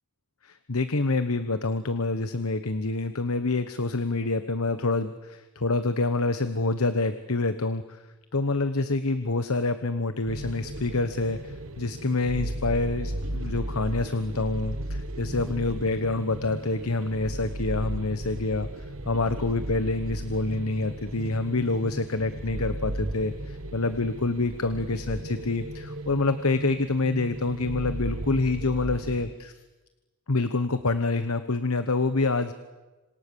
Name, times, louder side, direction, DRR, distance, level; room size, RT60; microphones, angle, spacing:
voice 1, 0.4-8.0 8.3-29.5 30.3-32.5, left 3 dB, 70° left, 11 dB, 1.2 m, -27 dB
sound 1, 10.3-29.2, right 1 dB, 65° right, 1.5 m, -35 dB
26.5 x 26.5 x 7.0 m, 1.1 s
head